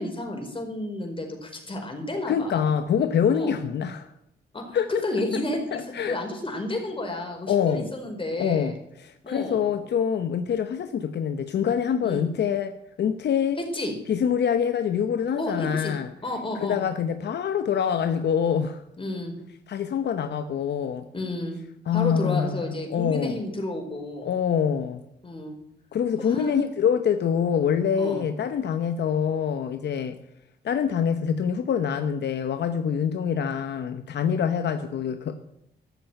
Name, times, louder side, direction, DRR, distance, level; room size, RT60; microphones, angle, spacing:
voice 1, 0.0-2.6 3.3-3.6 4.5-8.7 9.2-9.7 12.0-12.3 13.6-13.9 15.4-16.0 16.2-16.8 19.0-19.4 21.1-21.6 21.9-24.3 25.2-25.5 26.2-26.6 28.0-28.2, left 1 dB, 30° left, 2 dB, 4.6 m, -31 dB
voice 2, 2.3-4.1 4.7-5.0 5.7-6.2 7.5-7.9 8.4-12.7 13.0-13.6 14.1-16.1 16.6-18.8 19.7-21.0 21.9-23.4 24.2-25.0 25.9-30.2 30.6-35.3, left 7 dB, 75° left, 8 dB, 0.9 m, -25 dB
13.0 x 8.0 x 8.9 m, 0.80 s
cardioid pair, 75°, 18 cm